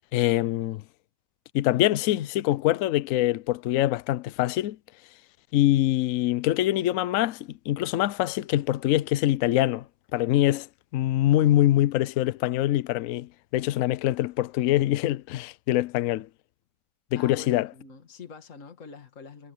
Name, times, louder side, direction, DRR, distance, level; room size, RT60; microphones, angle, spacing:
voice 1, 0.1-0.8 1.5-4.8 5.5-9.8 10.1-10.7 10.9-16.3 17.1-17.7, left 14 dB, 65° left, 0.8 m, -24 dB
voice 2, 17.2-19.5, left 4 dB, 45° left, 2.4 m, -45 dB
omnidirectional pair, 1.9 m